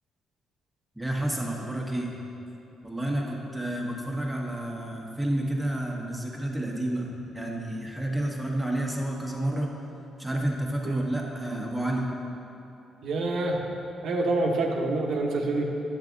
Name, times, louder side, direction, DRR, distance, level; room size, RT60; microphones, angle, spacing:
voice 1, 0.9-2.1 2.8-9.7 10.2-12.1, right 1 dB, 10° right, -1 dB, 1.5 m, -30 dB
voice 2, 13.0-13.6 14.0-15.6, right 2 dB, 70° right, 0 dB, 1.1 m, -26 dB
10.0 x 7.5 x 3.9 m, 2.9 s
cardioid pair, 90°, 0 cm